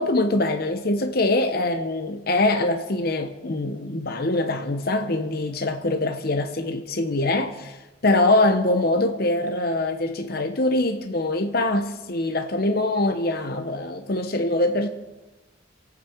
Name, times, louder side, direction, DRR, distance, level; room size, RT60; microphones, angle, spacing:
voice 1, 0.0-14.9, left 2 dB, 50° left, 0.9 m, -23 dB
26.0 x 9.2 x 4.6 m
head